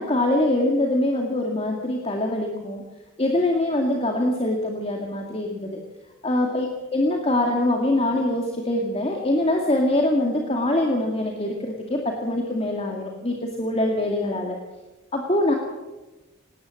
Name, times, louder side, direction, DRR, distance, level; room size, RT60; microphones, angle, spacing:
voice 1, 0.0-2.8 3.2-5.8 6.2-14.6 15.1-15.6, left 1 dB, 30° left, 2 dB, 2.1 m, -23 dB
19.0 x 18.0 x 7.7 m, 1.1 s
head